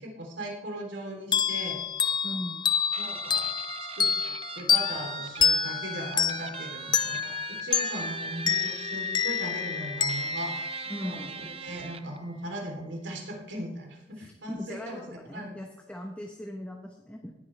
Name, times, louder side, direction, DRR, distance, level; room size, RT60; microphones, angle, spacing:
voice 1, 0.0-1.8 3.0-3.5 3.9-4.1 4.5-10.6 11.0-15.5, right 1 dB, 85° right, 1 dB, 3.4 m, -38 dB
sound 1, 1.3-11.6, left 6 dB, 25° left, 0.4 m, -28 dB
voice 2, 2.2-2.6 10.9-11.3 14.2-17.3, left 1 dB, 5° left, 1 dB, 1.0 m, -39 dB
Guitar, 2.9-12.2, right 6 dB, 35° right, 0.5 m, -42 dB
19.0 x 9.0 x 3.4 m, 1.0 s
head